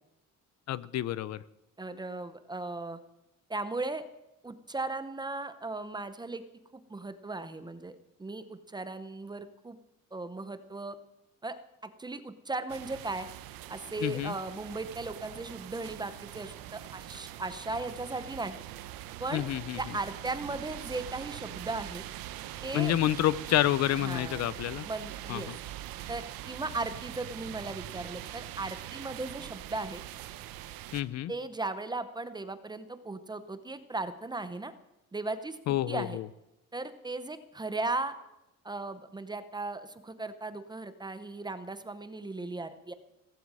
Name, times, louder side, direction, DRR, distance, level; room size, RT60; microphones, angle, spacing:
voice 1, 0.7-1.4 14.0-14.3 19.3-19.8 22.7-24.9 25.3-25.4 30.9-31.3 35.7-36.2, left 13 dB, 50° left, 19 dB, 0.6 m, -28 dB
voice 2, 1.8-3.0 3.5-4.0 4.4-6.4 6.7-7.9 8.2-9.8 10.1-11.0 11.4-11.6 11.8-13.3 13.7-18.6 19.2-19.4 19.8-22.0 22.6-23.0 24.0-24.4 24.8-25.5 26.1-30.0 31.3-34.7 35.1-36.2 36.7-38.1 38.6-42.9, right 2 dB, 10° right, 11 dB, 0.7 m, -37 dB
sound 1, 12.7-31.0, right 13 dB, 85° right, 1.0 m, -43 dB
17.0 x 14.5 x 4.8 m, 0.89 s
cardioid pair, 155°, 34 cm